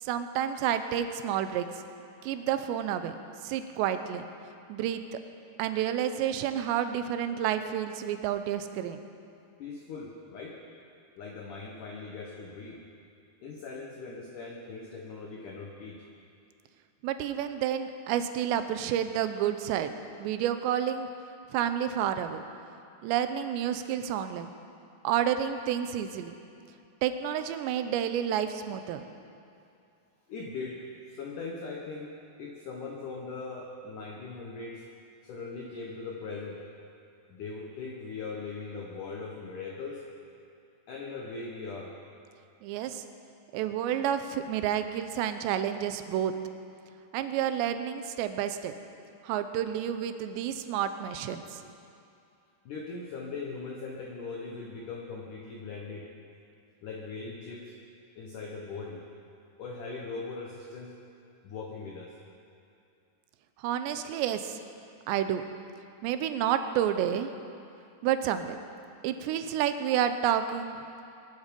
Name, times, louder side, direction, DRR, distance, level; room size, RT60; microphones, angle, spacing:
voice 1, 0.0-1.7 2.2-3.2 3.4-4.2 4.7-5.2 5.6-9.0 17.0-19.9 20.2-21.1 21.5-22.4 23.0-24.5 25.0-26.3 27.0-29.0 42.6-43.0 43.5-46.3 47.1-48.7 49.2-51.6 63.6-64.6 65.1-65.4 66.0-67.3 68.0-68.6 69.0-70.8, right 10 dB, 80° right, 9 dB, 2.9 m, -30 dB
voice 2, 9.6-10.6 11.2-12.8 13.4-16.0 30.3-34.8 35.2-36.6 37.3-40.0 40.9-41.9 52.7-56.1 56.8-57.7 58.2-59.0 59.6-60.9 61.4-62.2, left 4 dB, 70° left, 0 dB, 1.9 m, -40 dB
22.5 x 11.5 x 5.2 m, 2.5 s
omnidirectional pair, 5.3 m